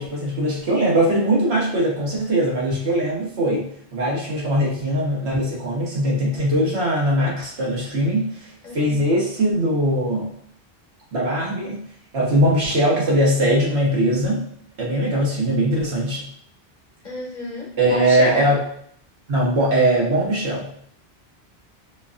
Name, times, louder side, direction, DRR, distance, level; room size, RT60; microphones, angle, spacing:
voice 1, 0.0-10.3 11.1-11.8 12.1-14.4 14.8-16.2 17.8-18.6 19.3-20.7, right 1 dB, 85° right, -3 dB, 1.4 m, -21 dB
voice 2, 8.6-9.0 17.0-18.5, left 2 dB, 50° left, -2 dB, 1.0 m, -30 dB
4.6 x 2.5 x 2.4 m, 0.66 s
omnidirectional pair, 1.1 m